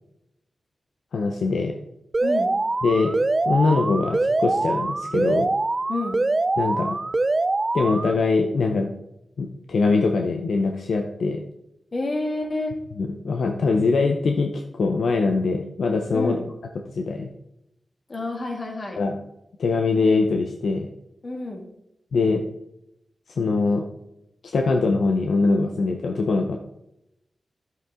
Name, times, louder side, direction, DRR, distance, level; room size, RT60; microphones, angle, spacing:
voice 1, 1.1-1.7 2.8-3.1 3.4-5.5 6.6-7.0 7.7-8.9 9.4-11.4 13.0-16.4 16.9-17.3 19.0-19.2 19.6-20.9 22.1-22.4 23.3-23.8 24.5-26.6, left 3 dB, 85° left, 3 dB, 0.8 m, -22 dB
Alarm, 2.1-8.1, right 2 dB, 40° right, 0.5 m, -24 dB
voice 2, 2.2-2.5 5.9-6.2 11.9-12.7 16.1-16.4 18.1-19.0 21.2-21.6, left 2 dB, 55° left, 2 dB, 2.3 m, -28 dB
11.0 x 7.9 x 3.7 m, 0.85 s
cardioid pair, 45°, 0 cm